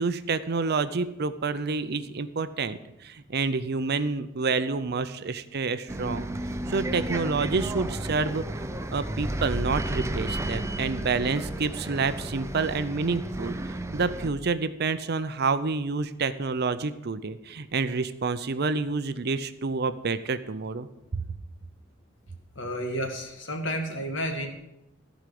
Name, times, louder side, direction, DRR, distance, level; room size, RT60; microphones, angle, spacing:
voice 1, 0.0-6.3 6.7-8.4 8.9-13.5 13.9-20.9 21.1-21.2, right 4 dB, 55° right, 13 dB, 0.6 m, -28 dB
Bus, 5.9-14.3, right 1 dB, 15° right, 0.6 m, -32 dB
voice 2, 22.5-24.5, equal, 70° left, 4 dB, 1.9 m, -31 dB
14.5 x 5.1 x 7.7 m, 0.89 s
head